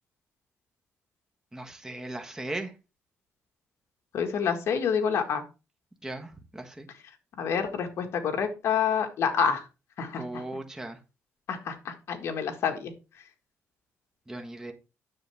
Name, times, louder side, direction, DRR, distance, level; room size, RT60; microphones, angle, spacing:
voice 1, 1.5-2.7 6.0-6.9 10.2-11.0 14.3-14.7, right 2 dB, 10° right, 1.4 m, -37 dB
voice 2, 4.1-5.4 7.4-9.6 10.0-10.4 11.5-12.9, left 7 dB, 65° left, 1.7 m, -28 dB
9.7 x 6.8 x 3.5 m
cardioid pair, 135°, 5 cm